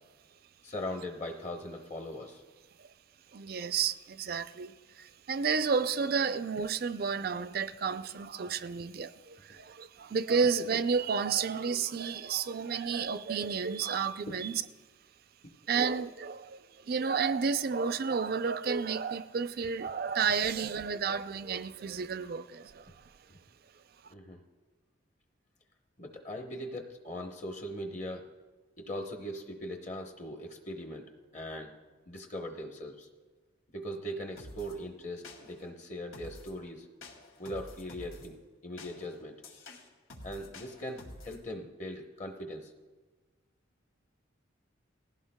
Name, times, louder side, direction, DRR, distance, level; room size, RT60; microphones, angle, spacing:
voice 1, 0.6-2.4 14.3-14.4 24.1-24.4 26.0-28.2 28.8-31.7 32.1-33.1 33.7-36.9 37.4-38.4 38.6-39.4 40.2-42.7, equal, 40° left, 0.9 m, -40 dB
voice 2, 3.3-14.6 15.7-23.0, right 5 dB, 50° right, 0.4 m, -31 dB
sound 1, 34.4-34.8 35.2-35.7 36.1-36.6 37.0-38.3 38.8-41.4, left 2 dB, 85° left, 2.2 m, -49 dB
19.5 x 15.5 x 2.2 m
head